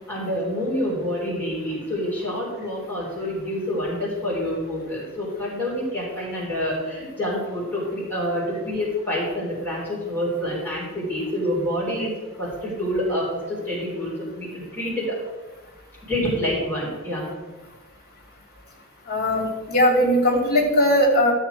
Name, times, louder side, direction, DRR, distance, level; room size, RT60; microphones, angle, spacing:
voice 1, 0.1-12.1 12.4-15.2 16.1-17.2, equal, 10° left, -7 dB, 3.7 m, -27 dB
voice 2, 19.1-21.3, equal, 50° left, 0 dB, 2.8 m, -19 dB
13.0 x 7.4 x 4.7 m, 1.3 s
head